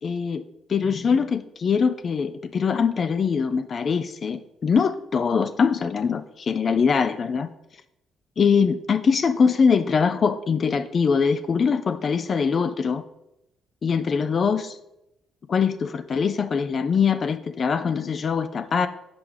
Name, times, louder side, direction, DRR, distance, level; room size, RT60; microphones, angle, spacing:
voice 1, 0.0-0.4 0.7-7.5 8.4-13.0 13.8-14.8 15.5-18.9, left 6 dB, 50° left, 11 dB, 0.3 m, -22 dB
6.8 x 4.6 x 3.6 m, 0.87 s
supercardioid pair, 65°, 0 cm